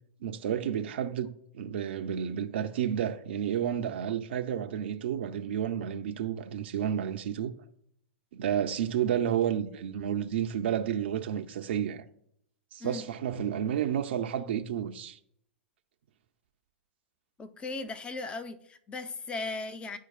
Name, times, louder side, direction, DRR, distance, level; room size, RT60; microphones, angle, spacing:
voice 1, 0.2-7.5 8.3-12.0 12.7-15.2, right 9 dB, 65° right, 0.5 m, -31 dB
voice 2, 17.4-20.0, left 3 dB, 15° left, 0.6 m, -37 dB
12.0 x 4.5 x 2.4 m
hypercardioid pair, 115°, 6 cm